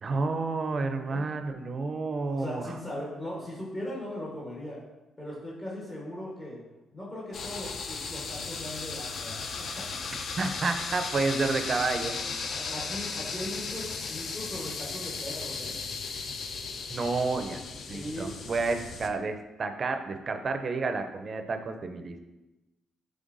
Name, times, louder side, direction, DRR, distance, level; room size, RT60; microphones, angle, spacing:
voice 1, 0.0-2.6 10.4-12.2 16.9-17.6 17.9-22.1, right 3 dB, 40° right, 7 dB, 0.4 m, -30 dB
voice 2, 2.2-4.8 5.2-6.6 6.9-10.0 12.5-15.8 17.9-18.3 18.7-18.8, left 1 dB, 30° left, -6 dB, 1.0 m, -39 dB
sound 1, 7.3-19.1, left 4 dB, 55° left, 0.4 m, -36 dB
5.2 x 3.3 x 2.5 m, 1.0 s
cardioid pair, 90°, 0 cm